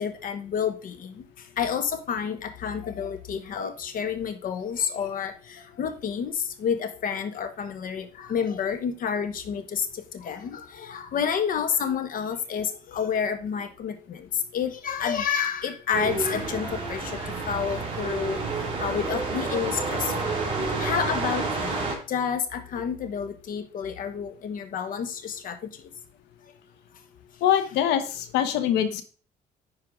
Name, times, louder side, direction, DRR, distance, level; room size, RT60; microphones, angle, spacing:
voice 1, 0.0-18.4 18.8-21.8 22.1-25.8, left 7 dB, 55° left, 9 dB, 1.2 m, -30 dB
sound 1, 15.9-22.0, right 3 dB, 30° right, 3.2 m, -29 dB
voice 2, 27.4-29.0, left 10 dB, 85° left, 10 dB, 1.0 m, -23 dB
9.9 x 4.7 x 3.7 m, 0.39 s
cardioid pair, 110°, 17 cm